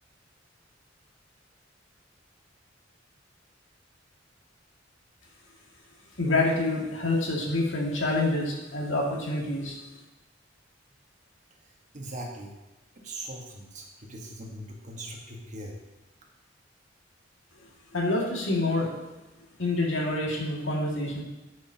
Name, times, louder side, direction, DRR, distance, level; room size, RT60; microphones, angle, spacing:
voice 1, 6.2-9.8 17.9-18.9 19.6-21.2, left 2 dB, 80° left, -2 dB, 2.1 m, -27 dB
voice 2, 11.9-12.5 12.9-15.8, right 1 dB, 40° right, 0 dB, 1.5 m, -40 dB
11.5 x 6.3 x 2.9 m, 1.1 s
head